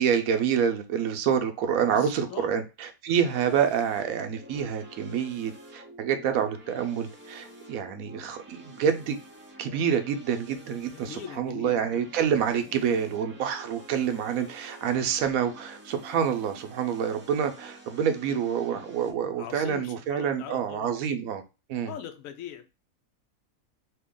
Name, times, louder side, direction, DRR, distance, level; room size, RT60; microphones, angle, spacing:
voice 1, 0.0-9.2 9.6-21.4 21.7-21.9, right 8 dB, 75° right, 7 dB, 1.0 m, -27 dB
voice 2, 1.6-2.5 3.1-3.2 10.9-12.0 19.4-21.1 21.9-22.7, left 9 dB, 70° left, 7 dB, 1.0 m, -41 dB
sound 1, 3.2-19.1, equal, 15° right, 0.5 m, -49 dB
2.8 x 2.8 x 3.6 m, 0.28 s
omnidirectional pair, 1.5 m